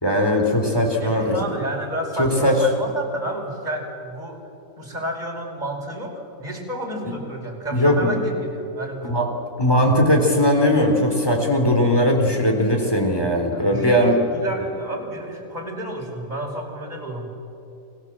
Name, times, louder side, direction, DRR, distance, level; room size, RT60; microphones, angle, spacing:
voice 1, 0.0-1.4 2.2-2.6 7.7-8.1 9.0-9.3 9.6-14.2, left 1 dB, 15° left, 2 dB, 3.8 m, -19 dB
voice 2, 1.0-4.4 4.8-9.1 13.5-17.3, right 1 dB, 25° right, -1 dB, 5.1 m, -30 dB
29.5 x 21.0 x 7.7 m, 2.9 s
omnidirectional pair, 1.8 m